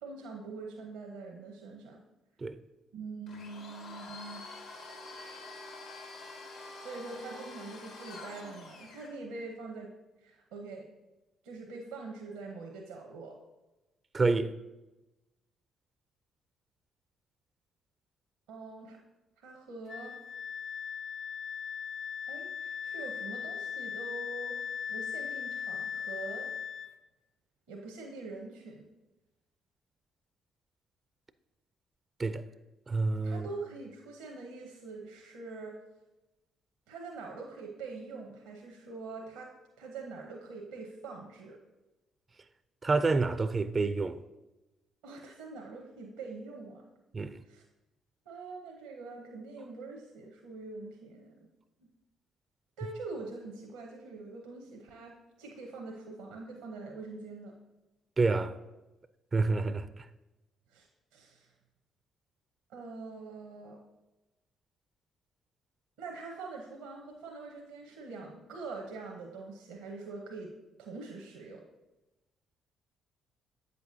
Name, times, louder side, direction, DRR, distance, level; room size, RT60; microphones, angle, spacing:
voice 1, 0.0-2.0 2.9-4.4 6.8-9.9 10.2-10.8 11.4-13.3 18.5-19.0 19.4-20.1 22.3-26.8 27.7-28.8 33.2-35.8 36.9-39.5 39.8-41.6 45.0-46.8 47.4-47.6 48.3-51.4 52.8-57.5 60.7-61.5 62.7-63.8 66.0-70.5 70.8-71.6, right 3 dB, 80° right, 0.8 m, -44 dB
Domestic sounds home sounds, 3.3-9.1, left 3 dB, 80° left, 1.4 m, -47 dB
voice 2, 14.1-14.5 32.2-32.4 32.9-33.5 42.8-44.2 47.1-47.4 58.2-58.5 59.3-60.0, right 3 dB, 35° right, 0.3 m, -28 dB
Wind instrument woodwind instrument, 19.9-26.9, left 7 dB, 45° left, 0.4 m, -38 dB
8.1 x 6.7 x 2.7 m
hypercardioid pair, 50°, 0 cm